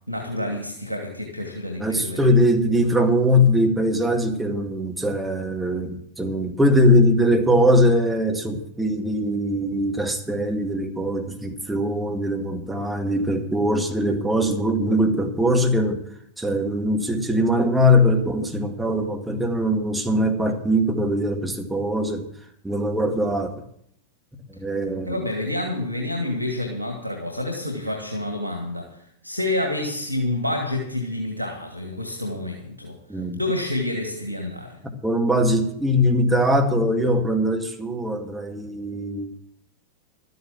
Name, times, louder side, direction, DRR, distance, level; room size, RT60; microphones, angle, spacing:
voice 1, 0.1-2.2 25.1-33.0 33.3-34.8, left 1 dB, 85° left, 3 dB, 2.1 m, -28 dB
voice 2, 1.8-16.0 16.4-22.3 22.6-23.5 24.5-25.2 33.1-33.4 34.8-39.3, equal, 5° right, 3 dB, 2.1 m, -21 dB
12.5 x 9.5 x 7.3 m, 0.70 s
figure-of-eight pair, 90°, 0 cm